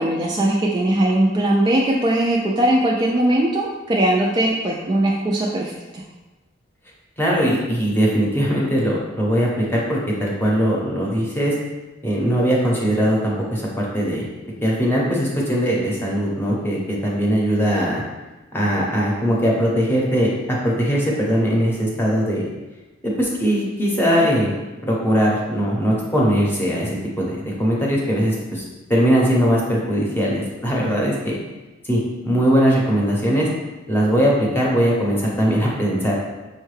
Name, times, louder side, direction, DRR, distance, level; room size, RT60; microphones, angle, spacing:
voice 1, 0.0-6.0, right 1 dB, 25° right, -3 dB, 0.3 m, -20 dB
voice 2, 7.2-11.6 12.0-14.3 14.6-18.0 18.5-22.5 23.0-24.5 24.8-28.6 28.9-31.4 31.8-33.5 33.9-36.1, equal, 10° left, -3 dB, 0.7 m, -20 dB
5.4 x 2.2 x 3.2 m, 1.1 s
head